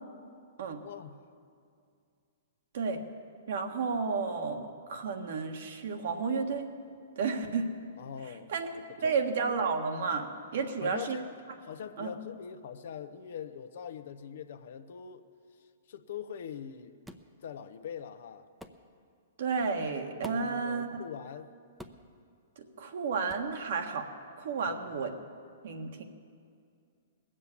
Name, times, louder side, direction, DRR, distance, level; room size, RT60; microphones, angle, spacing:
voice 1, 0.8-1.3 8.0-9.2 10.5-11.3 11.6-15.3 15.9-17.0 17.4-18.5 20.3-21.5 24.7-25.0, left 8 dB, 65° left, 10 dB, 0.8 m, -43 dB
voice 2, 3.5-6.7 7.2-7.7 8.5-8.7 9.0-11.2 12.0-12.1 19.4-20.9 22.6-24.1 24.4-25.1 25.6-26.0, right 5 dB, 65° right, 5 dB, 1.5 m, -32 dB
sound 1, 17.0-17.3 18.6-18.8 20.2-20.6 21.8-22.1 23.3-23.5, equal, ahead, 0.7 m, -47 dB
19.5 x 7.6 x 8.5 m, 2.3 s
hypercardioid pair, 130°, 0 cm